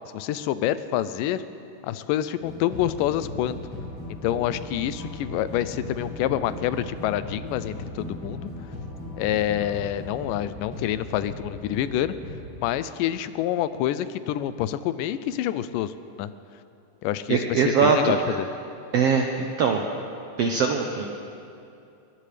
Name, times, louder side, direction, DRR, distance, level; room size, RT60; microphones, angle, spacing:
voice 1, 0.1-1.4 1.8-3.6 4.2-8.5 9.2-12.2 12.6-16.3 17.0-18.5, left 12 dB, 85° left, 14 dB, 2.2 m, -27 dB
sound 1, 2.4-12.6, left 1 dB, 55° left, 6.5 m, -37 dB
voice 2, 17.3-18.2 18.9-19.9 20.4-21.1, right 6 dB, 80° right, 3 dB, 1.4 m, -22 dB
22.5 x 18.5 x 3.3 m, 2.6 s
omnidirectional pair, 3.8 m